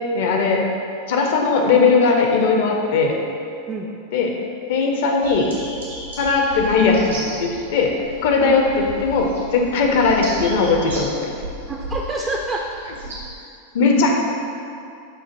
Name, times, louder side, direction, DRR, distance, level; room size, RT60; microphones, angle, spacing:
voice 1, 0.1-0.6 1.1-3.2 4.1-4.4 4.7-5.5 6.2-11.3 13.7-14.1, left 4 dB, 55° left, 1 dB, 0.5 m, -18 dB
sound 1, 5.2-13.4, right 2 dB, 75° right, 1.1 m, -34 dB
voice 2, 11.7-12.6, right 2 dB, 20° right, -2 dB, 0.3 m, -27 dB
7.0 x 2.5 x 2.5 m, 2.5 s
figure-of-eight pair, 90°, 0 cm